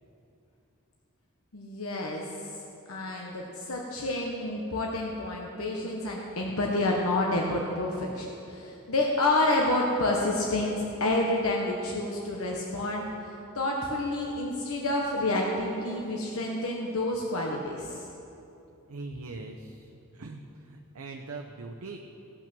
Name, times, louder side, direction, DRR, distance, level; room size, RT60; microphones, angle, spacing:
voice 1, 1.5-2.3 2.9-18.1, left 2 dB, 75° left, -1 dB, 1.0 m, -29 dB
voice 2, 18.9-19.9 20.1-22.0, right 3 dB, 85° right, 3 dB, 0.7 m, -41 dB
16.0 x 6.1 x 6.0 m, 2.8 s
head